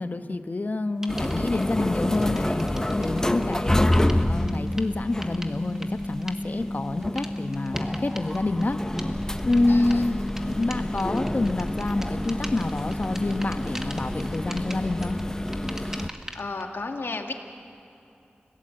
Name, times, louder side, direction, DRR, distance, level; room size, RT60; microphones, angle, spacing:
voice 1, 0.0-8.8 9.4-10.2 10.5-15.2, left 2 dB, 50° left, 8 dB, 1.1 m, -27 dB
sound 1, 1.0-1.6 2.1-16.6, equal, 15° right, 1.6 m, -42 dB
sound 2, 1.1-16.1, left 1 dB, 15° left, 0.9 m, -28 dB
voice 2, 9.7-10.0 16.3-17.3, left 3 dB, 80° left, 3 dB, 1.9 m, -33 dB
30.0 x 17.0 x 7.7 m, 2.9 s
wide cardioid pair, 75°, 4 cm